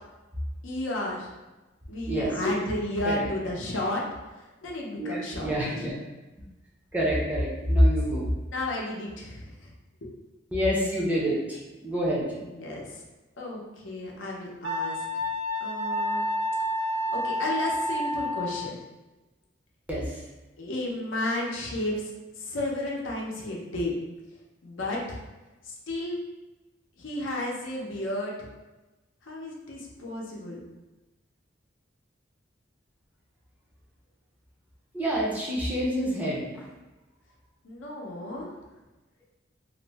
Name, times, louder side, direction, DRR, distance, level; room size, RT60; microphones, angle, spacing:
voice 1, 0.6-1.3 1.9-4.0 4.3-5.7 8.5-9.7 10.0-10.1 12.3-13.0 13.4-15.2 15.6-16.2 17.1-18.8 20.6-22.1 22.4-23.9 24.6-25.2 25.6-26.2 27.0-28.5 29.2-30.6 37.6-38.5, left 1 dB, 80° left, -2 dB, 0.6 m, -33 dB
voice 2, 2.1-2.4 3.0-3.2 5.0-5.9 6.9-8.2 10.5-12.3 19.9-20.2 34.9-36.7, equal, 10° right, -5 dB, 0.5 m, -26 dB
Wind instrument woodwind instrument, 14.6-18.7, left 1 dB, 60° right, 0.4 m, -29 dB
2.5 x 2.0 x 3.3 m, 1.1 s
head